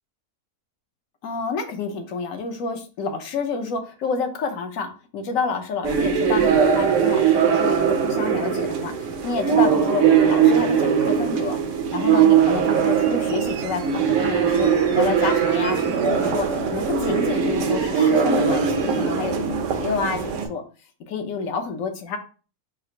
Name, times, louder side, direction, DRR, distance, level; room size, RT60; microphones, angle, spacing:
voice 1, 1.2-11.6 11.9-20.6 21.1-22.2, left 4 dB, 65° left, 5 dB, 1.1 m, -29 dB
sound 1, 5.8-20.5, right 7 dB, 65° right, 0.9 m, -20 dB
3.9 x 2.4 x 4.3 m, 0.36 s
omnidirectional pair, 1.6 m